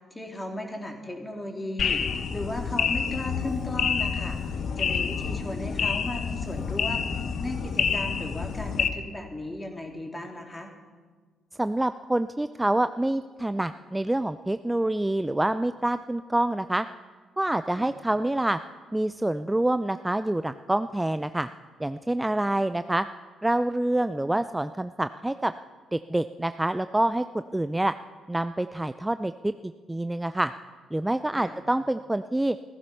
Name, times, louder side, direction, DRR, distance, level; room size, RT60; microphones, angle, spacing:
voice 1, 0.1-4.4 4.8-7.1 7.4-10.7 17.7-17.9 31.3-31.6, left 1 dB, 20° left, 3 dB, 3.0 m, -36 dB
sound 1, 1.8-8.9, left 6 dB, 55° left, 1.0 m, -28 dB
voice 2, 11.6-16.9 17.4-18.6 18.9-21.5 21.8-23.0 23.4-25.5 25.9-27.9 28.3-30.5 30.9-32.6, right 1 dB, 15° right, 12 dB, 0.5 m, -26 dB
15.0 x 15.0 x 5.6 m, 1.5 s
hypercardioid pair, 45°, 0 cm